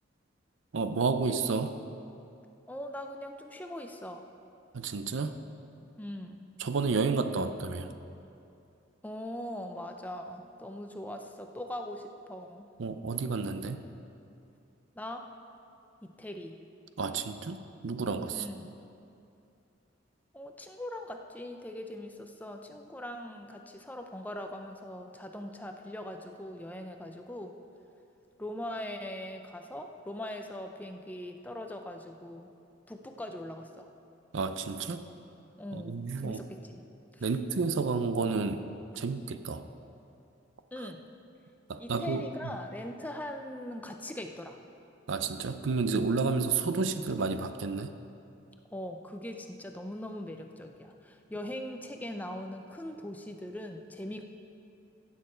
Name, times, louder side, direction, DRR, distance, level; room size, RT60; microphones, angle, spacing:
voice 1, 0.7-1.7 4.7-5.4 6.6-7.9 12.8-13.8 17.0-18.5 34.3-35.1 35.7-36.4 37.2-38.6 39.0-39.6 41.7-42.3 45.1-47.9, right 4 dB, 70° right, 10 dB, 0.5 m, -31 dB
voice 2, 2.7-4.2 6.0-6.5 9.0-12.7 14.9-15.3 16.0-16.6 18.3-18.7 20.3-27.6 28.4-32.5 32.9-33.9 35.6-36.9 37.1-37.2 40.7-41.0 41.8-44.6 48.7-54.2, left 1 dB, 10° left, 4 dB, 0.5 m, -41 dB
15.5 x 7.4 x 4.4 m, 2.6 s
head